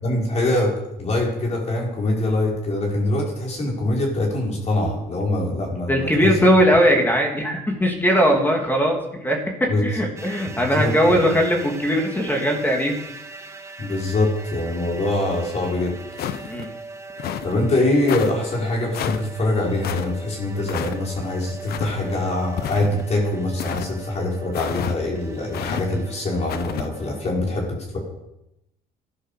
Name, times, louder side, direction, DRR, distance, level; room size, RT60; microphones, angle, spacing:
voice 1, 0.0-6.4 9.7-9.8 10.5-11.3 13.8-16.5 17.4-28.0, left 2 dB, 40° left, -2 dB, 4.8 m, -24 dB
voice 2, 5.9-13.0 16.5-16.7, equal, 10° left, 1 dB, 3.0 m, -19 dB
sound 1, 10.2-27.2, right 3 dB, 15° right, 1.6 m, -41 dB
sound 2, 16.2-16.7 17.2-17.5 18.1-18.3 18.9-19.3 19.8-20.1 20.7-21.0 21.7-22.0 22.6-23.1 23.6-23.9 24.5-25.0 25.5-25.8 26.5-26.9, left 10 dB, 70° left, 1.1 m, -29 dB
13.5 x 11.0 x 6.7 m, 0.88 s
cardioid pair, 110°, 17 cm